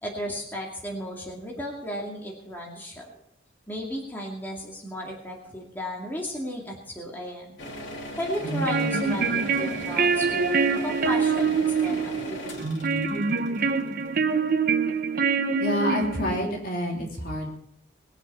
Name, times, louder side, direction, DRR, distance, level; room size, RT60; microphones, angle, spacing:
voice 1, 0.0-3.1 3.7-7.6 8.2-12.6, equal, 10° left, -2 dB, 2.3 m, -34 dB
sound 1, 7.6-14.5, left 1 dB, 75° left, 2.7 m, -38 dB
sound 2, 8.4-16.5, right 5 dB, 50° right, 0.9 m, -25 dB
voice 2, 15.6-17.5, left 1 dB, 50° left, 0 dB, 3.1 m, -28 dB
20.5 x 8.1 x 5.6 m, 0.73 s
head